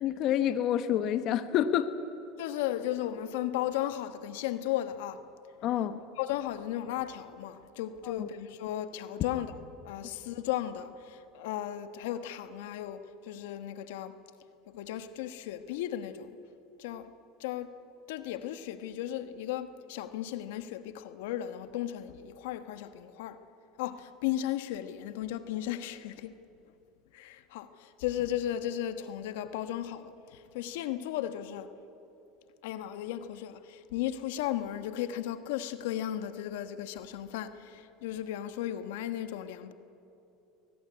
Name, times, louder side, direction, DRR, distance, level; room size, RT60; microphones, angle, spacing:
voice 1, 0.0-1.9 5.6-6.0 8.0-8.3, left 10 dB, 55° left, 1.0 m, -28 dB
voice 2, 2.4-5.2 6.2-9.5 9.8-14.2 14.7-16.4 16.8-17.1 17.4-17.7 18.1-23.4 23.8-26.3 27.1-31.7 32.6-39.7, left 12 dB, 80° left, 1.2 m, -35 dB
22.5 x 19.0 x 9.6 m
supercardioid pair, 95°, 0 cm